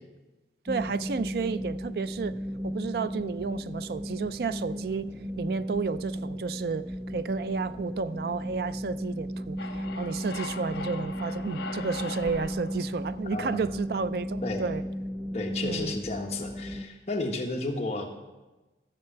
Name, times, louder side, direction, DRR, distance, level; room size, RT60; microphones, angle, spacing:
voice 1, 0.6-2.4 2.6-5.1 5.4-14.8 15.6-15.9, right 5 dB, 60° right, 0.4 m, -32 dB
sound 1, 0.7-16.9, equal, 10° right, 0.7 m, -35 dB
sound 2, 9.6-14.1, left 4 dB, 90° left, 0.8 m, -41 dB
voice 2, 13.3-13.6 14.4-14.7 15.3-18.1, left 2 dB, 35° left, 1.2 m, -32 dB
14.0 x 6.9 x 5.7 m
head